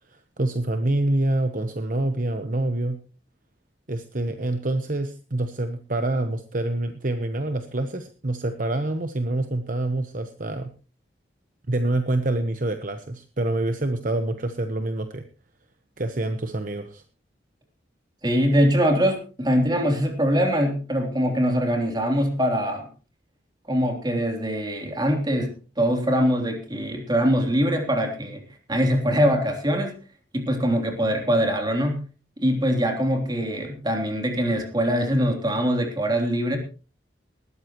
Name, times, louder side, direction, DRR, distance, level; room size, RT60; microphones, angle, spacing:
voice 1, 0.1-3.0 3.9-10.7 11.7-15.2 16.0-17.0, right 2 dB, 45° right, 7 dB, 1.1 m, -26 dB
voice 2, 18.2-22.9 23.7-28.4 28.7-29.9 30.3-32.1 32.4-36.6, equal, 25° right, 3 dB, 3.4 m, -23 dB
19.5 x 13.5 x 3.1 m, 0.36 s
head